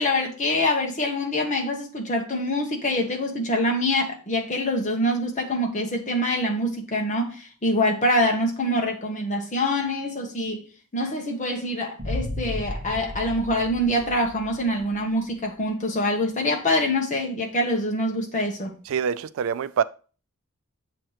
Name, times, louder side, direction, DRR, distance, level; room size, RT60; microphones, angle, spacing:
voice 1, 0.0-10.6 10.9-18.7, left 1 dB, 35° left, 1.2 m, -25 dB
sound 1, 12.0-15.0, left 1 dB, 35° right, 1.2 m, -34 dB
voice 2, 18.9-19.8, right 7 dB, 65° right, 0.3 m, -25 dB
7.3 x 3.0 x 4.7 m
head